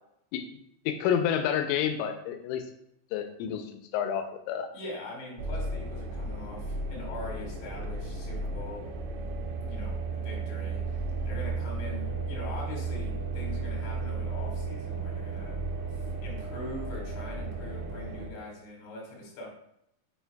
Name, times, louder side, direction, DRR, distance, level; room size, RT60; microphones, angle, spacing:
voice 1, 0.9-2.7 3.1-4.7, left 8 dB, 90° left, 7 dB, 3.2 m, -29 dB
voice 2, 4.7-8.9 9.6-15.6 15.8-19.5, left 2 dB, 70° left, -2 dB, 4.2 m, -42 dB
sound 1, 5.4-18.3, right 3 dB, 85° right, 2.6 m, -34 dB
7.1 x 6.5 x 2.3 m, 0.77 s
omnidirectional pair, 5.6 m